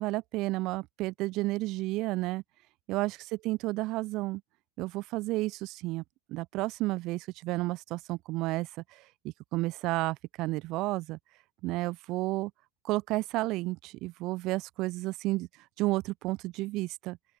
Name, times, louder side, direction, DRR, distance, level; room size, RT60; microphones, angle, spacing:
voice 1, 0.0-2.4 2.9-4.4 4.8-6.0 6.3-11.2 11.6-12.5 12.8-15.5 15.8-17.2, right 20 dB, 40° right, 3.9 m, -32 dB
open air
supercardioid pair, 160°, 0 cm